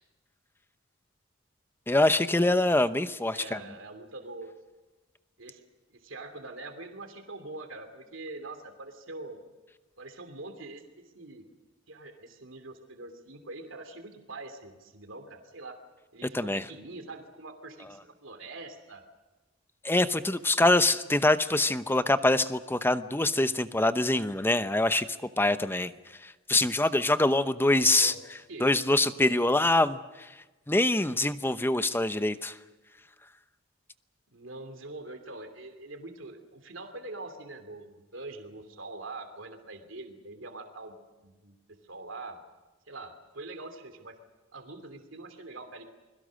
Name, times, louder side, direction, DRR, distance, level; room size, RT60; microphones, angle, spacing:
voice 1, 1.9-3.6 16.3-16.6 19.8-25.1 25.4-25.9 26.2-28.1 28.6-30.0 30.7-32.5, left 2 dB, 10° left, 12 dB, 0.8 m, -24 dB
voice 2, 3.3-4.5 5.4-5.6 5.9-9.4 10.0-10.8 11.1-11.5 11.9-15.8 16.1-19.0 20.7-20.8 27.8-28.2 28.5-28.7 34.3-42.4 42.9-44.2 44.5-45.8, right 2 dB, 70° right, 7 dB, 2.9 m, -44 dB
29.0 x 22.0 x 6.5 m, 1.2 s
head